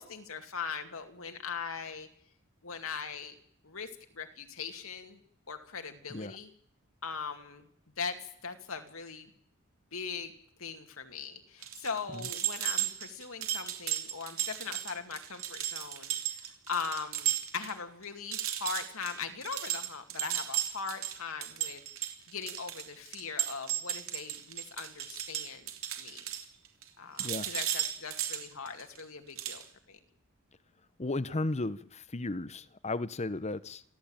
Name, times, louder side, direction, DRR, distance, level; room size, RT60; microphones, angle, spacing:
voice 1, 0.0-2.1 2.6-3.3 3.6-3.9 4.1-5.2 5.5-6.5 7.0-7.7 8.0-9.3 9.9-10.3 10.6-21.8 22.3-25.7 26.0-26.2 27.0-30.0, left 5 dB, 70° left, 6 dB, 2.5 m, -40 dB
sound 1, 11.6-17.7 18.0-18.1 18.3-26.9 27.2-29.0 29.4-29.6, right 12 dB, 70° right, 3.3 m, -35 dB
voice 2, 31.0-33.8, left 2 dB, 30° left, 16 dB, 0.9 m, -35 dB
28.5 x 14.5 x 8.9 m, 0.68 s
head